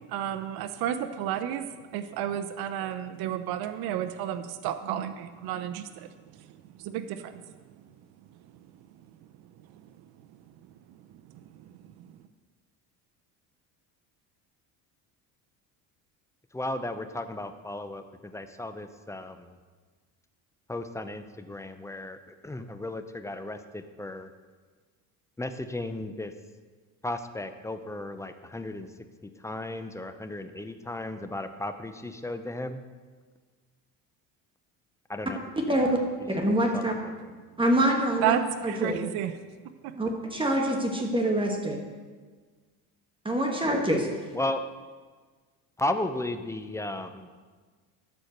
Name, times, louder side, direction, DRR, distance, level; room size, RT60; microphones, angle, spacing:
voice 1, 0.0-1.7 1.9-6.1 6.8-7.4 38.2-39.3, right 10 dB, 65° right, 10 dB, 0.7 m, -31 dB
voice 2, 16.5-19.6 20.7-24.3 25.4-26.3 27.0-28.9 29.2-32.8 35.1-35.4 35.7-35.9 36.7-37.3 44.3-44.6 45.8-47.3, left 1 dB, 5° left, 9 dB, 0.6 m, -35 dB
voice 3, 36.3-36.9 37.6-38.4 38.6-39.0 40.0-41.8 43.2-44.1, right 1 dB, 15° right, 1 dB, 1.5 m, -25 dB
13.0 x 4.5 x 6.5 m, 1.5 s
supercardioid pair, 105°, 40 cm